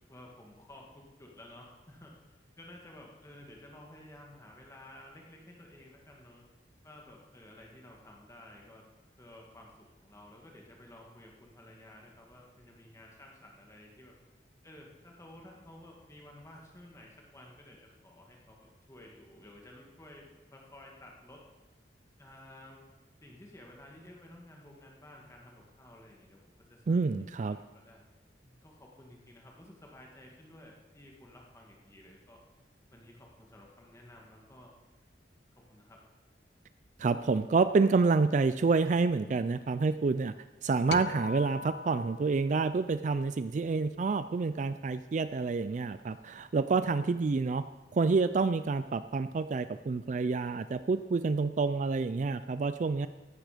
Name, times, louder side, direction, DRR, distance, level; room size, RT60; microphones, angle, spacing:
voice 1, 0.1-6.4 6.8-8.8 9.2-14.2 14.6-21.4 22.2-22.8 23.2-28.0 28.4-32.4 32.9-34.7 35.6-36.0 46.1-46.2, left 1 dB, 15° left, -1 dB, 1.8 m, -53 dB
voice 2, 26.9-27.6 37.0-40.3 40.6-47.6 47.9-53.1, right 4 dB, 40° right, 13 dB, 0.3 m, -28 dB
sound 1, 40.9-43.4, left 5 dB, 65° left, 0.6 m, -41 dB
15.0 x 12.5 x 5.1 m, 1.2 s
head